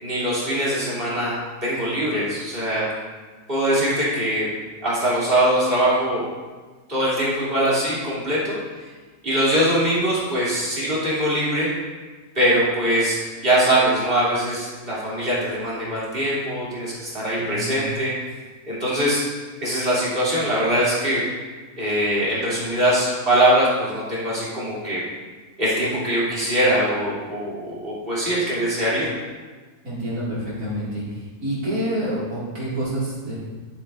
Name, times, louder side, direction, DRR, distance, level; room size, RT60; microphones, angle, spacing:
voice 1, 0.0-1.3 1.6-2.9 3.5-4.5 4.8-6.3 6.9-8.6 9.2-11.7 12.3-18.1 18.7-19.2 19.6-21.2 21.8-25.0 25.6-29.1, right 1 dB, 45° right, -9 dB, 3.3 m, -22 dB
voice 2, 17.4-17.8 29.8-31.0 31.4-33.4, right 1 dB, 90° right, -9 dB, 2.8 m, -27 dB
11.5 x 8.3 x 2.6 m, 1.4 s
omnidirectional pair, 1.4 m